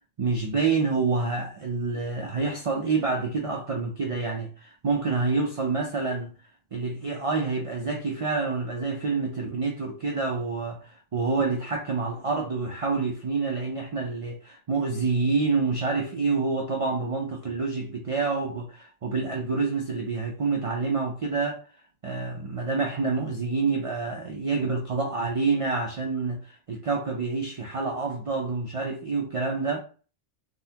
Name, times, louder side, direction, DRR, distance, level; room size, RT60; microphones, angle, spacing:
voice 1, 0.2-6.3 6.7-21.6 22.0-29.8, right 4 dB, 55° right, 0.3 m, -27 dB
3.8 x 2.1 x 2.7 m
omnidirectional pair, 1.2 m